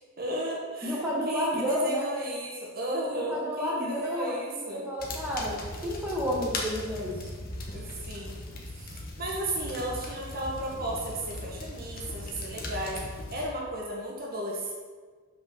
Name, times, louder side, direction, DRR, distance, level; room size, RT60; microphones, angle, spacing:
voice 1, 0.2-4.9 7.7-8.3 8.7-13.0 13.3-14.7, right 1 dB, 45° right, -3 dB, 1.6 m, -34 dB
voice 2, 0.8-2.1 3.1-7.3, equal, 10° right, -6 dB, 1.5 m, -31 dB
sound 1, 5.0-13.5, left 2 dB, 45° left, 1.2 m, -39 dB
6.2 x 5.4 x 6.2 m, 1.5 s
head